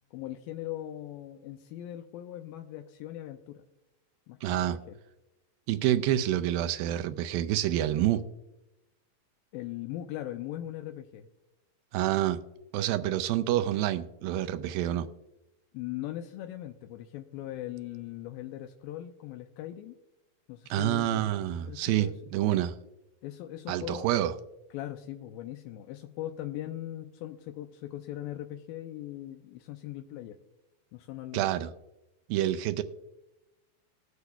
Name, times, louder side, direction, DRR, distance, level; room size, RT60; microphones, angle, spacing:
voice 1, 0.1-3.7 4.3-5.0 9.5-11.3 15.7-20.0 20.5-21.3 21.6-22.6 23.2-24.1 24.7-30.4 30.9-31.5, left 13 dB, 85° left, 2.3 m, -40 dB
voice 2, 4.4-4.8 5.7-8.2 11.9-12.4 12.7-15.1 20.7-22.7 23.7-24.3 31.3-31.7 32.3-32.8, right 12 dB, 90° right, 2.3 m, -27 dB
20.0 x 8.1 x 2.3 m
omnidirectional pair, 4.0 m